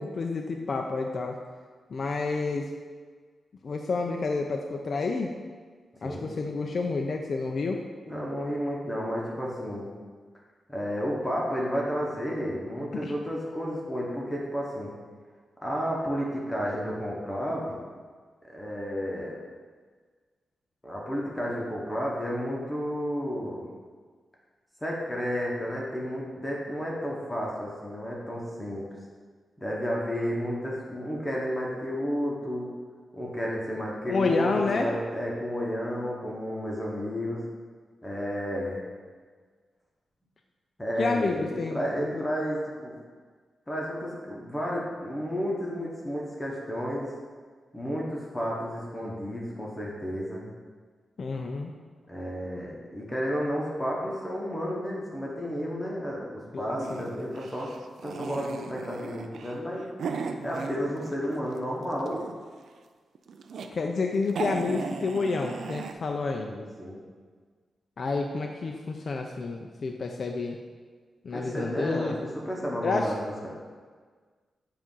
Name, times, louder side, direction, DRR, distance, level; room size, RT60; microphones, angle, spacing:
voice 1, 0.0-1.4 1.9-2.7 3.6-5.3 6.0-7.8 12.9-13.1 34.1-34.9 41.0-42.2 51.2-51.7 56.5-57.1 63.7-66.5 68.0-70.6 71.2-72.2 72.8-73.1, left 4 dB, 45° left, 2 dB, 0.3 m, -29 dB
voice 2, 8.1-9.9 10.7-14.9 15.6-17.8 18.5-19.3 20.8-23.6 24.8-28.8 29.6-32.7 33.1-37.4 38.0-38.8 40.8-42.9 43.7-47.1 47.7-50.5 52.1-57.7 58.0-59.8 60.4-62.2 66.5-67.0 71.3-72.1 72.5-73.5, equal, 10° left, -4 dB, 0.8 m, -32 dB
sound 1, 56.8-61.4 61.8-62.6 63.1-63.7 64.0-64.1 64.3-65.9, right 5 dB, 70° right, 0.3 m, -37 dB
7.3 x 2.5 x 5.3 m, 1.5 s
wide cardioid pair, 150°, 0 cm